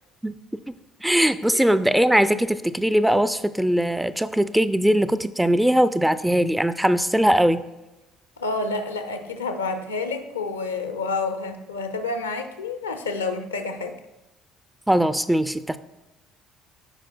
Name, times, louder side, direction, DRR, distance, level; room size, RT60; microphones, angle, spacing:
voice 1, 1.0-7.6 14.9-15.8, equal, 5° right, 13 dB, 0.4 m, -20 dB
voice 2, 8.4-14.0, left 3 dB, 85° left, 7 dB, 0.5 m, -29 dB
14.5 x 4.9 x 2.2 m, 1.0 s
figure-of-eight pair, 55°, 0 cm